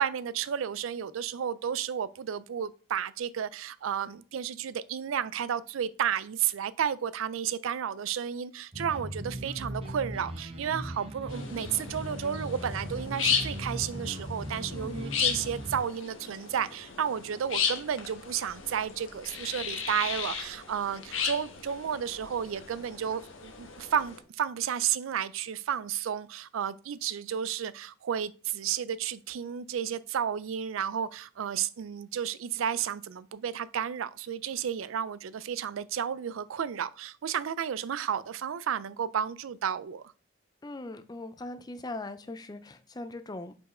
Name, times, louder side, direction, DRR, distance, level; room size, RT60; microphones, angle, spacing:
voice 1, 0.0-40.0, right 8 dB, 85° right, 0.4 m, -32 dB
sound 1, 8.7-15.8, equal, 30° right, 1.0 m, -38 dB
sound 2, 11.3-24.2, left 6 dB, 80° left, 1.2 m, -35 dB
voice 2, 14.7-15.1 40.6-43.5, left 2 dB, 20° left, 0.4 m, -40 dB
5.3 x 4.5 x 4.2 m
head